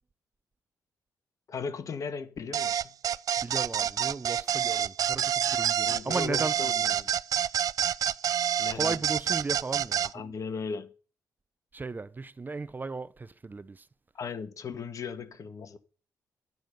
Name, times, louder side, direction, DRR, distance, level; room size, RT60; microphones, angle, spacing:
voice 1, 1.5-2.9 5.8-7.1 8.6-8.9 10.1-10.9 14.1-15.8, left 5 dB, 60° left, 1.7 m, -37 dB
sound 1, 2.5-10.1, right 9 dB, 70° right, 0.5 m, -27 dB
voice 2, 3.4-7.0 8.7-10.4 11.7-13.9, right 3 dB, 30° right, 0.7 m, -36 dB
13.5 x 9.3 x 5.3 m
cardioid pair, 70°, 6 cm